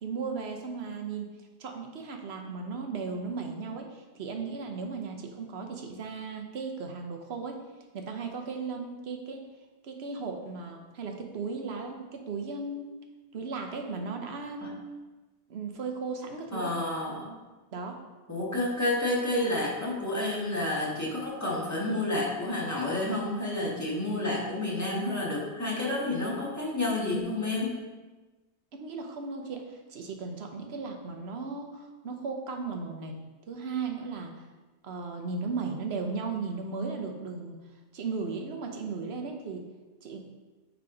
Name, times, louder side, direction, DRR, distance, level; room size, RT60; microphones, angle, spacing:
voice 1, 0.0-1.3 1.6-7.6 7.9-9.4 9.8-12.9 13.3-14.8 15.5-16.7 17.7-18.0 28.7-33.1 33.5-34.4 34.8-37.6 37.9-39.6 40.0-40.2, right 4 dB, 65° right, 4 dB, 1.1 m, -36 dB
voice 2, 16.5-17.3 18.3-27.7, left 2 dB, 15° left, -5 dB, 1.6 m, -30 dB
9.3 x 3.6 x 3.8 m, 1.2 s
omnidirectional pair, 1.2 m